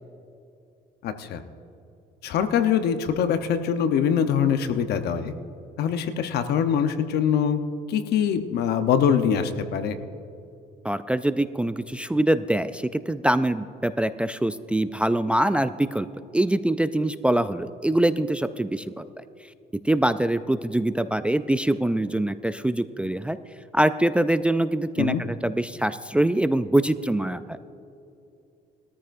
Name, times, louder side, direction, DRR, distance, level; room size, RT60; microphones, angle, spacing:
voice 1, 1.0-1.4 2.2-5.3 5.8-7.6 7.9-10.0 25.0-25.2, left 8 dB, 75° left, 9 dB, 0.9 m, -23 dB
voice 2, 10.8-16.1 16.3-19.0 19.8-23.4 23.7-27.6, right 1 dB, 5° right, 12 dB, 0.3 m, -24 dB
20.5 x 13.5 x 2.6 m, 2.7 s
cardioid pair, 110°, 17 cm